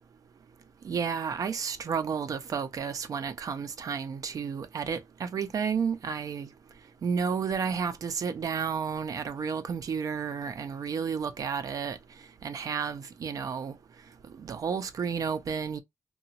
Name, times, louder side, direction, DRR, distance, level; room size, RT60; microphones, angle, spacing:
voice 1, 0.8-6.5 7.0-12.0 12.4-13.8 14.4-15.8, right 6 dB, 65° right, 0.5 m, -31 dB
2.9 x 2.2 x 2.7 m
cardioid pair, 80°, 6 cm